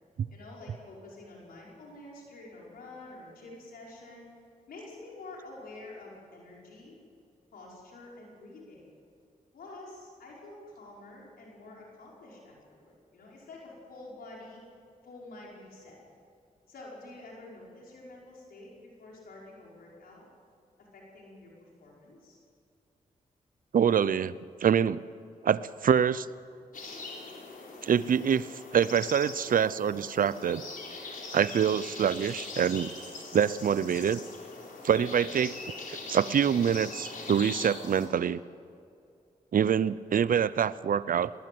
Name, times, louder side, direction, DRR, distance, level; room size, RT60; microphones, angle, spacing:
voice 1, 0.3-4.3 4.7-6.9 7.5-8.8 9.5-14.6 15.0-16.0 16.7-20.3 20.8-22.4, left 2 dB, 90° left, -3 dB, 5.4 m, -48 dB
voice 2, 23.7-24.3 24.6-25.0 25.4-26.3 27.8-28.5 28.7-30.6 31.3-32.9 33.3-34.2 34.8-35.5 35.9-38.4 39.5-41.3, right 8 dB, 70° right, 18 dB, 0.6 m, -25 dB
sound 1, 26.7-38.1, left 3 dB, 65° left, 4.0 m, -42 dB
20.0 x 18.5 x 7.8 m, 2.4 s
cardioid pair, 50°, 15 cm